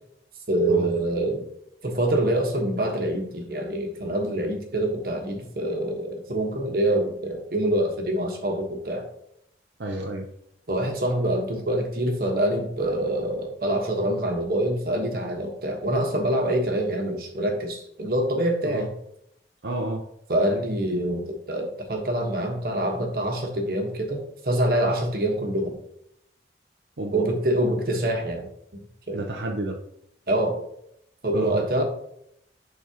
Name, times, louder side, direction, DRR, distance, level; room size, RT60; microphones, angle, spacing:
voice 1, 0.5-1.5 1.8-9.1 10.7-18.9 20.3-25.8 27.1-28.5 29.1-29.2 30.3-30.6 31.2-31.8, right 1 dB, 55° right, 2 dB, 1.3 m, -25 dB
voice 2, 9.8-10.3 18.6-18.9 19.6-20.0 27.0-27.3 29.1-29.8 31.3-31.6, right 2 dB, 80° right, 2 dB, 0.7 m, -30 dB
10.5 x 4.1 x 2.9 m, 0.74 s
head